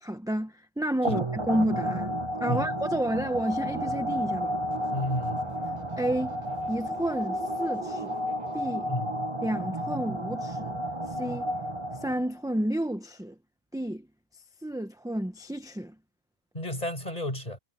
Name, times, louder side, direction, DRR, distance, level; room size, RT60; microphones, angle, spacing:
voice 1, 0.0-4.5 6.0-8.2 8.5-8.9 9.4-10.8 11.1-11.5 12.0-13.3 13.7-14.1 14.6-15.9, right 1 dB, 5° right, 1.0 m, -31 dB
sound 1, 1.0-12.4, equal, 30° right, 1.7 m, -32 dB
sound 2, 4.7-8.7, right 4 dB, 85° right, 7.3 m, -49 dB
voice 2, 4.9-5.5 8.9-9.1 16.5-17.6, left 1 dB, 35° left, 7.3 m, -32 dB
omnidirectional pair, 1.1 m